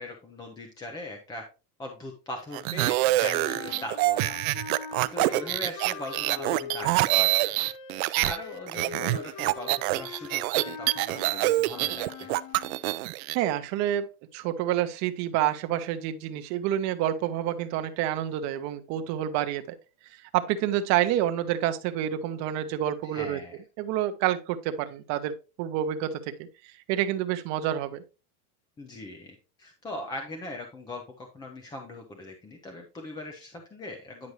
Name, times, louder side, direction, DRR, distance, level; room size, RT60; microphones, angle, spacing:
voice 1, 0.0-1.4 1.8-4.4 5.1-12.3 23.0-23.6 28.8-34.3, left 1 dB, 10° left, 3 dB, 0.5 m, -40 dB
sound 1, 2.5-8.4 8.7-13.4, right 19 dB, 65° right, 0.5 m, -26 dB
sound 2, 3.3-12.9, left 6 dB, 55° left, 1.3 m, -42 dB
voice 2, 13.3-14.1 14.3-19.8 20.2-23.4 23.8-26.5 26.9-28.0, right 11 dB, 35° right, 9 dB, 0.8 m, -28 dB
9.7 x 5.2 x 3.1 m, 0.31 s
supercardioid pair, 160°, 46 cm